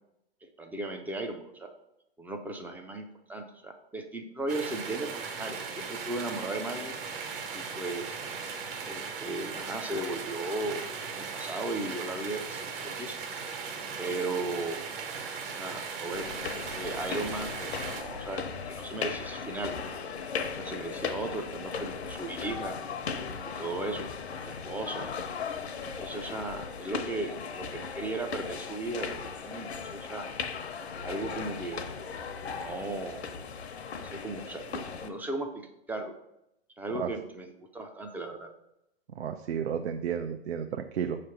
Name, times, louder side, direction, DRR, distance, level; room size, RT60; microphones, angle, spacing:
voice 1, 0.4-1.7 2.2-6.9 7.5-8.2 8.9-10.8 11.1-13.2 14.0-14.8 15.5-16.3 16.6-19.7 20.5-22.8 23.4-24.1 24.4-25.1 25.9-30.3 31.0-31.8 32.5-33.3 34.0-36.1 36.8-38.5, right 2 dB, 5° right, 4 dB, 0.4 m, -36 dB
sound 1, 4.5-18.0, right 5 dB, 55° right, 1.5 m, -38 dB
sound 2, 16.1-35.1, left 5 dB, 75° left, 0.9 m, -37 dB
voice 2, 39.2-41.2, right 8 dB, 80° right, 6 dB, 0.6 m, -32 dB
6.6 x 3.3 x 5.6 m, 0.83 s
hypercardioid pair, 115°, 32 cm